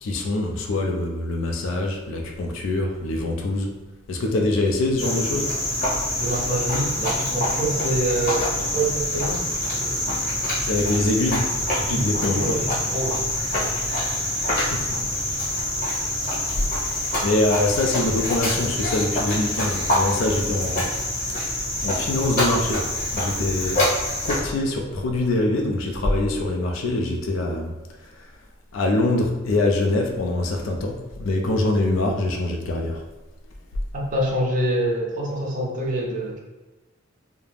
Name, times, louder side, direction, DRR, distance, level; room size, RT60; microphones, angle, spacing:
voice 1, 0.0-3.7 4.1-5.5 10.6-11.4 11.7-12.6 14.6-14.8 17.2-20.9 21.8-22.8 23.1-23.8 24.2-27.7 28.7-33.0, left 2 dB, 65° left, 1 dB, 0.4 m, -24 dB
Cricket, 5.0-24.4, left 1 dB, 45° left, 0.9 m, -25 dB
voice 2, 6.2-9.4 9.8-10.1 11.9-13.3 13.5-14.0 33.9-36.4, right 1 dB, 40° right, -2 dB, 0.5 m, -26 dB
2.4 x 2.0 x 3.2 m, 1.2 s
head